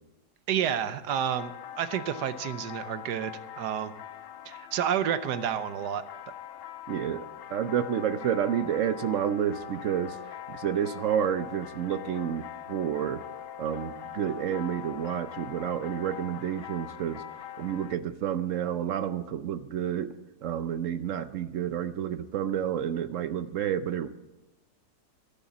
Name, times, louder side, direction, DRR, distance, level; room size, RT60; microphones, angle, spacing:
voice 1, 0.5-1.5 1.8-3.9 4.5-6.0, right 9 dB, 85° right, 12 dB, 1.3 m, -30 dB
sound 1, 1.1-17.9, left 11 dB, 70° left, 0.5 m, -42 dB
voice 2, 6.9-7.2 7.5-10.2 10.5-13.2 13.6-17.2 17.6-20.1 20.4-24.1, right 9 dB, 65° right, 12 dB, 0.8 m, -30 dB
11.5 x 11.5 x 7.0 m, 1.0 s
omnidirectional pair, 1.8 m